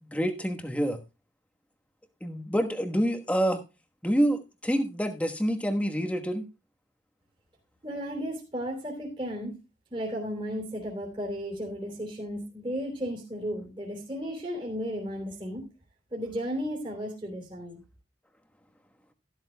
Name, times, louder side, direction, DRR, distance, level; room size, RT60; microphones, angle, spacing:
voice 1, 0.0-1.0 2.2-3.6 4.0-6.5, equal, 5° left, 5 dB, 1.2 m, -27 dB
voice 2, 7.8-9.6 9.9-15.6 16.1-17.8, equal, 25° right, 0 dB, 3.2 m, -34 dB
13.0 x 12.5 x 2.2 m, 0.27 s
head